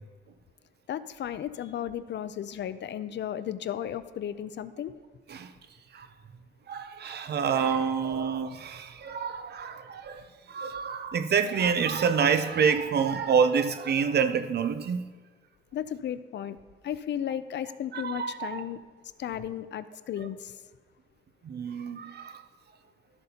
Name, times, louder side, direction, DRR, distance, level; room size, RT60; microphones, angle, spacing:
voice 1, 0.9-4.9 15.7-16.6 16.8-18.8 19.2-20.6, left 10 dB, 65° left, 0.4 m, -34 dB
voice 2, 6.7-15.1 17.9-18.6 21.4-22.4, right 6 dB, 55° right, 0.5 m, -27 dB
12.5 x 7.7 x 2.8 m
wide cardioid pair, 145°, 20 cm